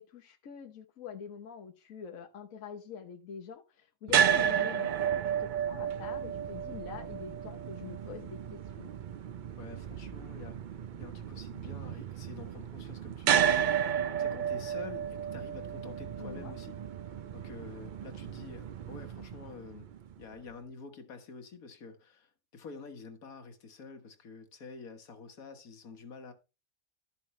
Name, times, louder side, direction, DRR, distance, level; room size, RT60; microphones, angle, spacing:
voice 1, 0.0-8.9 14.8-15.1 16.2-16.5, left 7 dB, 70° left, 1.4 m, -45 dB
sound 1, 4.1-20.2, right 8 dB, 75° right, 0.4 m, -32 dB
voice 2, 9.6-10.6 11.0-16.8 17.3-19.9 20.2-26.3, left 4 dB, 90° left, 1.9 m, -48 dB
12.5 x 6.8 x 3.2 m
omnidirectional pair, 1.5 m